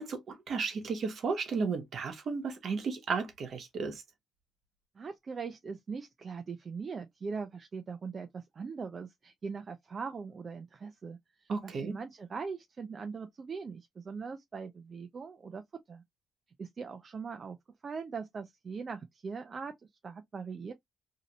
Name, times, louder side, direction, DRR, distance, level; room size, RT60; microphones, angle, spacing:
voice 1, 0.0-4.0 11.5-12.0, right 5 dB, 60° right, 1.1 m, -34 dB
voice 2, 5.0-15.6 15.9-16.0 16.6-17.6 17.8-19.7 20.0-20.7, right 5 dB, 40° right, 0.5 m, -41 dB
2.8 x 2.6 x 2.9 m
cardioid pair, 90°, 0 cm